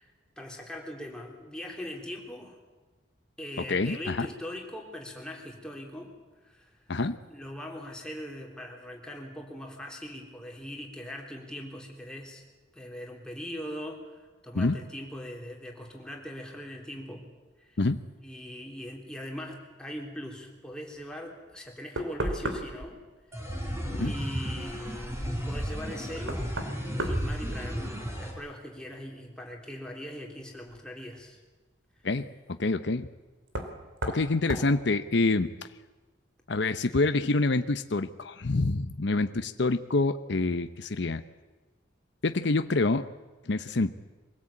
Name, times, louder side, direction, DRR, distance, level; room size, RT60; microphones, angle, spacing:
voice 1, 0.0-2.6 3.4-6.1 6.4-6.9 7.3-12.4 12.7-17.3 17.6-17.8 18.2-23.0 23.3-23.6 24.0-26.5 27.0-27.9 28.2-31.4, equal, 5° left, 0 dB, 3.6 m, -41 dB
voice 2, 3.7-4.3 6.9-7.2 14.5-14.8 17.8-18.0 23.9-24.1 32.0-32.3 32.6-33.1 34.1-35.5 36.5-41.2 42.2-43.1 43.5-43.9, left 3 dB, 65° left, 9 dB, 0.8 m, -26 dB
Knock, 21.5-21.6 22.0-22.9 25.3-25.4 26.2-28.1 28.4-29.0 30.7-30.8 33.5-33.8 34.0-34.2 34.5-34.7, right 1 dB, 80° right, 2.8 m, -34 dB
sound 1, 23.3-28.3, equal, 15° right, 4.1 m, -33 dB
24.0 x 17.5 x 8.6 m, 1.2 s
head